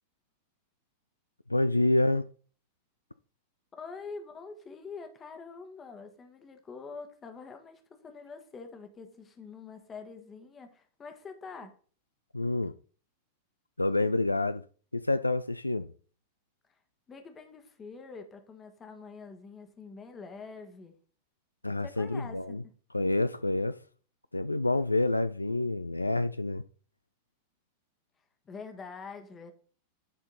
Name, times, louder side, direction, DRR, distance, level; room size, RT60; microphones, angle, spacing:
voice 1, 1.5-2.3 12.3-12.7 13.8-14.6 14.9-15.9 21.6-22.6 22.9-23.8 24.3-26.6, left 2 dB, 85° left, 0.3 m, -28 dB
voice 2, 3.8-11.8 16.7-16.8 17.1-20.9 21.8-22.7 28.4-29.5, left 4 dB, 20° left, 1.4 m, -45 dB
10.5 x 4.4 x 4.0 m
figure-of-eight pair, 90°, 0 cm